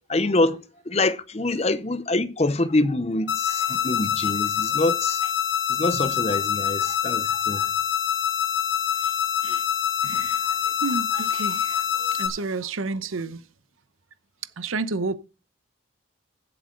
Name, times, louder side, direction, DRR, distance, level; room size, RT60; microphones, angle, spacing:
voice 1, 0.1-5.3 5.7-7.7, left 2 dB, 30° left, 0.7 m, -25 dB
sound 1, 3.3-12.3, left 9 dB, 60° left, 2.3 m, -25 dB
voice 2, 10.0-13.4 14.6-15.1, right 3 dB, 90° right, 0.8 m, -31 dB
16.0 x 7.8 x 3.8 m
head